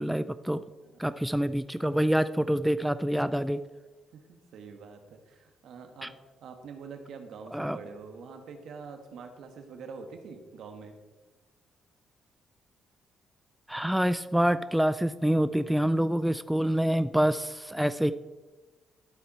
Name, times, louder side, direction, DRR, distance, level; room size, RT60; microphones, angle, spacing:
voice 1, 0.0-0.6 1.0-3.6 6.0-6.1 7.5-7.8 13.7-18.1, equal, 5° right, 12 dB, 0.3 m, -26 dB
voice 2, 4.1-6.1 6.4-10.9, right 5 dB, 75° right, 5 dB, 1.3 m, -45 dB
12.5 x 4.4 x 4.3 m, 1.2 s
cardioid pair, 90°, 0 cm